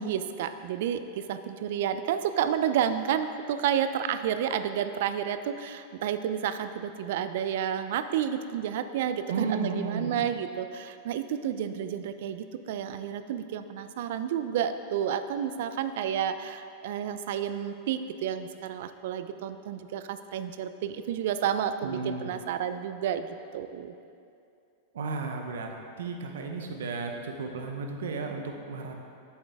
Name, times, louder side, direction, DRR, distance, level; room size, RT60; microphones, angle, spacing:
voice 1, 0.0-23.9, right 9 dB, 70° right, 10 dB, 0.4 m, -30 dB
voice 2, 9.3-10.2 21.8-22.3 24.9-28.9, right 4 dB, 85° right, 3 dB, 0.9 m, -33 dB
8.9 x 7.2 x 3.6 m, 2.5 s
hypercardioid pair, 115°, 0 cm